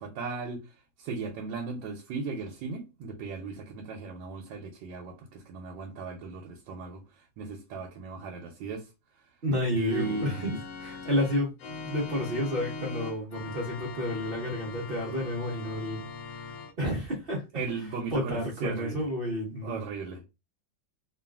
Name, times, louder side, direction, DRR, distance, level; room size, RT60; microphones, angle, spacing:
voice 1, 0.0-8.9 9.7-10.5 17.5-19.0 19.6-20.2, right 5 dB, 85° right, 1.3 m, -37 dB
voice 2, 9.4-11.5 11.8-17.5 18.1-19.8, left 1 dB, 55° right, 0.6 m, -31 dB
Organ, 9.9-16.7, left 4 dB, 70° left, 0.9 m, -41 dB
3.0 x 2.4 x 2.3 m
omnidirectional pair, 2.0 m